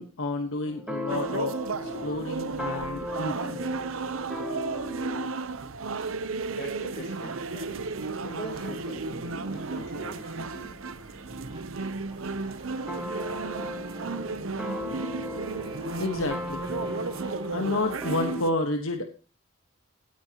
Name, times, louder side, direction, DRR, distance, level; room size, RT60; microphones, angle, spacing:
voice 1, 0.0-3.6 16.0-16.6 17.5-19.1, left 2 dB, 85° left, 4 dB, 1.4 m, -30 dB
sound 1, 0.7-5.4 12.9-18.4, left 1 dB, 5° right, 2.0 m, -37 dB
sound 2, 1.1-18.5, right 4 dB, 80° right, 0.8 m, -34 dB
voice 2, 6.6-7.9 8.2-10.8, equal, 50° left, 1 dB, 5.5 m, -42 dB
sound 3, 6.9-18.2, right 1 dB, 25° right, 2.9 m, -49 dB
18.0 x 9.3 x 3.0 m, 0.32 s
head